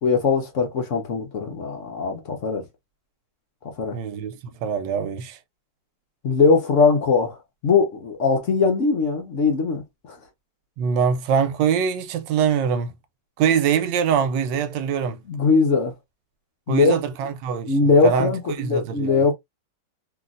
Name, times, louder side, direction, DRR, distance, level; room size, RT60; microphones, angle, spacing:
voice 1, 0.0-2.6 3.6-4.0 6.2-7.4 7.6-10.2 15.3-15.9 16.7-17.0 17.7-19.3, left 4 dB, 55° left, 1.0 m, -20 dB
voice 2, 3.9-5.4 10.8-12.9 13.4-15.2 16.7-19.3, right 7 dB, 90° right, 1.3 m, -23 dB
3.0 x 2.8 x 2.4 m
omnidirectional pair, 1.9 m